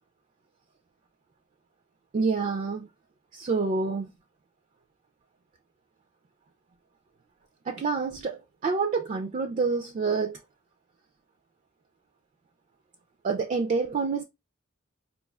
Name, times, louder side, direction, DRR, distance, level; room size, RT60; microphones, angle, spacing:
voice 1, 2.1-2.9 3.3-4.1 7.7-10.4 13.2-14.2, right 4 dB, 40° right, 0.3 m, -27 dB
4.2 x 2.3 x 2.2 m
head